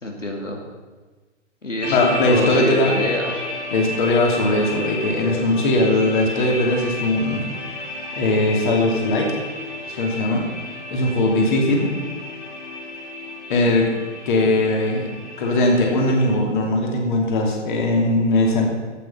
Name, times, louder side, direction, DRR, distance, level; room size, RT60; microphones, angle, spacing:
voice 1, 0.0-0.6 1.6-3.5, left 1 dB, 90° left, 0 dB, 2.4 m, -27 dB
sound 1, 1.8-16.3, left 2 dB, 70° left, 2.7 m, -32 dB
voice 2, 1.9-2.9 3.7-7.5 8.1-9.3 10.0-10.5 10.9-11.9 13.5-13.9 14.2-15.0 15.4-18.7, left 2 dB, 40° left, 0 dB, 2.9 m, -19 dB
13.5 x 8.8 x 5.7 m, 1.3 s
figure-of-eight pair, 130°, 36 cm